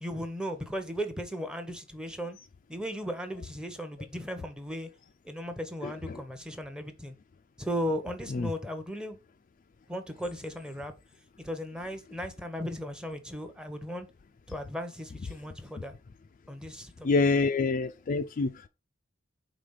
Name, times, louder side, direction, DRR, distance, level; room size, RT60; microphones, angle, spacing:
voice 1, 0.0-2.4 2.7-4.9 5.2-7.1 7.6-9.2 9.9-10.9 11.4-14.1 14.5-15.9 16.5-17.1, equal, 5° right, 0.8 m, -36 dB
voice 2, 5.8-6.2 8.3-8.5 17.0-18.5, left 3 dB, 40° left, 0.4 m, -26 dB
5.0 x 3.8 x 5.5 m
head